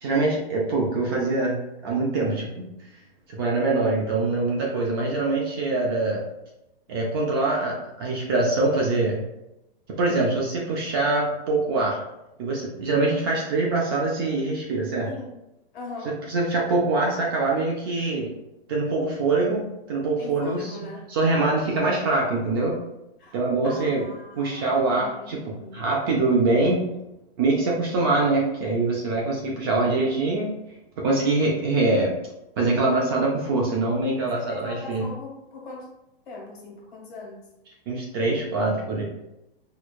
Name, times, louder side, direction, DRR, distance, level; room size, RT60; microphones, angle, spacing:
voice 1, 0.0-2.7 3.3-6.2 6.9-9.2 10.0-12.0 12.4-15.1 16.1-18.3 18.7-20.6 21.1-22.8 23.3-24.0 24.4-25.4 25.7-26.8 27.4-30.5 31.0-32.2 32.6-35.0 37.9-39.0, right 3 dB, 25° right, -2 dB, 0.3 m, -24 dB
voice 2, 15.0-15.4 15.7-16.2 20.2-21.0 23.2-23.4 23.6-25.9 34.2-35.9 36.2-37.5, left 2 dB, 60° left, -2 dB, 1.4 m, -40 dB
4.5 x 2.2 x 2.3 m, 0.91 s
hypercardioid pair, 150°, 30 cm